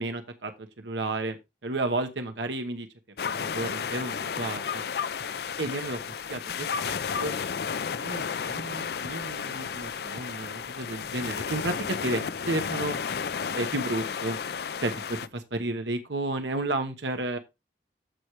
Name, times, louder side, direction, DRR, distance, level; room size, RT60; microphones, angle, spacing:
voice 1, 0.0-1.4 1.6-2.9 3.3-4.8 5.6-7.3 7.9-13.0 13.5-14.4 14.8-17.4, right 2 dB, 85° right, 6 dB, 1.1 m, -32 dB
sound 1, 3.2-15.3, left 6 dB, 60° left, 0.4 m, -32 dB
14.0 x 4.8 x 3.2 m, 0.23 s
head